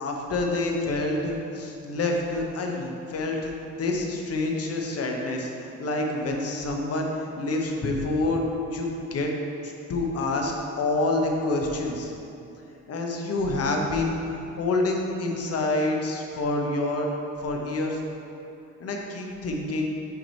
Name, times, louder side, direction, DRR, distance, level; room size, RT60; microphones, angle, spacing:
voice 1, 0.0-8.5 8.7-9.3 9.6-12.1 12.9-14.2 14.6-17.1 17.4-18.0 18.8-19.9, left 2 dB, 50° left, 1 dB, 0.9 m, -27 dB
7.9 x 3.0 x 4.4 m, 2.7 s
cardioid pair, 90°, 30 cm